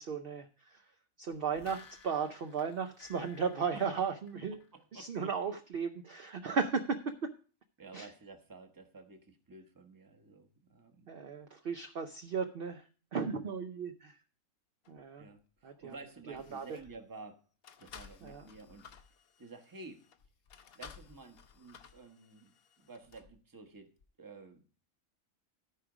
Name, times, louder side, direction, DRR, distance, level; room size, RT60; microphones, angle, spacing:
voice 1, 0.0-4.7 4.9-7.3 7.9-8.1 11.1-14.2 14.9-15.3 15.6-16.0 16.3-16.8 18.2-18.5, right 5 dB, 55° right, 6 dB, 0.7 m, -36 dB
sound 1, 1.3-4.8 5.2-5.3, left 5 dB, 85° left, 1.7 m, -57 dB
voice 2, 4.7-5.3 7.8-11.1 15.2-17.5 17.8-18.9 19.4-20.0 20.7-24.6, right 3 dB, 15° right, 6 dB, 0.9 m, -52 dB
sound 2, 14.8-15.0 15.8-16.0 16.3-17.0 17.6-23.3 24.0-24.1, left 7 dB, 55° left, 0.8 m, -56 dB
13.0 x 5.0 x 4.8 m, 0.38 s
omnidirectional pair, 1.4 m